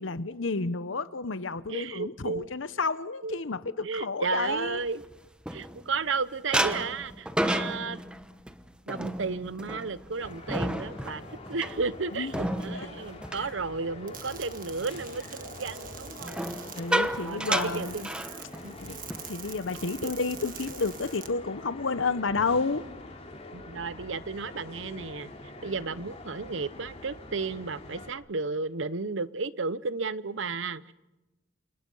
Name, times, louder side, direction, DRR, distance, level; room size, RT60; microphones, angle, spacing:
voice 1, 0.0-4.8 12.1-12.3 12.7-12.9 13.4-13.5 16.7-18.0 18.8-22.8, left 4 dB, 80° left, 1.0 m, -31 dB
voice 2, 1.7-2.5 3.2-3.4 3.8-5.0 5.5-8.0 8.9-11.2 11.5-16.5 17.2-18.1 18.6-18.7 20.0-20.1 23.5-25.3 25.6-30.9, right 4 dB, 70° right, 0.9 m, -33 dB
sound 1, 4.7-6.1 6.5-14.4 14.7-15.0 16.2-18.8 19.1-19.3 19.6-19.9 20.4-21.1, right 1 dB, 5° right, 1.1 m, -32 dB
sound 2, 10.2-28.1, left 2 dB, 35° left, 4.0 m, -45 dB
sound 3, 14.1-21.3, right 10 dB, 45° right, 1.7 m, -46 dB
29.5 x 28.5 x 5.6 m
head